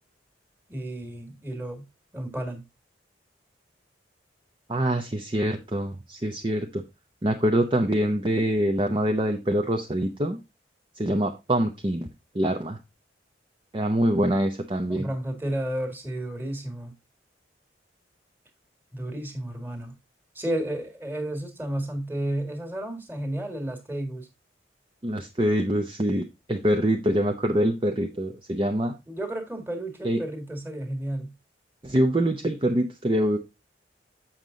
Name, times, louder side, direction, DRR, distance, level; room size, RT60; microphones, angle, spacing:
voice 1, 0.7-1.8 2.1-2.6 14.9-16.9 18.9-19.9 20.4-24.3 29.1-31.3, right 1 dB, 10° right, 1.8 m, -32 dB
voice 2, 4.7-6.8 7.2-10.4 11.0-12.1 12.3-12.8 13.7-15.1 25.0-28.9 30.0-30.2 31.8-33.4, right 1 dB, 25° right, 0.6 m, -25 dB
7.3 x 6.2 x 3.8 m
head